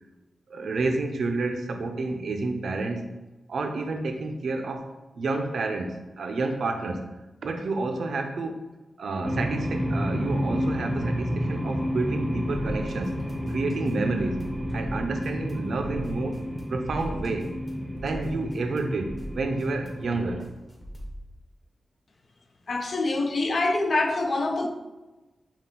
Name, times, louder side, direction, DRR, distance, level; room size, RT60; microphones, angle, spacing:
voice 1, 0.5-3.1 3.5-7.1 7.4-8.6 9.0-13.2 13.5-16.4 16.7-17.5 18.0-20.5, right 3 dB, 75° right, 0.5 m, -29 dB
sound 1, 9.2-20.2, equal, 5° right, 0.8 m, -30 dB
sound 2, 12.5-21.2, equal, 15° left, 1.1 m, -41 dB
voice 2, 22.7-24.7, left 2 dB, 50° left, 0.5 m, -25 dB
5.7 x 2.4 x 3.8 m
wide cardioid pair, 95°, 0 cm